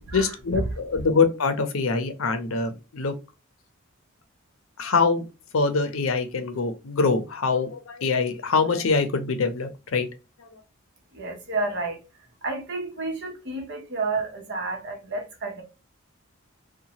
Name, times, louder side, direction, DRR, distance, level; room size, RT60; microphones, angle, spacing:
voice 1, 0.1-3.1 4.8-5.2 5.5-10.1 10.4-10.6, left 4 dB, 80° left, 0.6 m, -24 dB
voice 2, 11.1-12.0 12.4-15.6, right 3 dB, 55° right, 0.9 m, -30 dB
2.7 x 2.2 x 2.8 m
head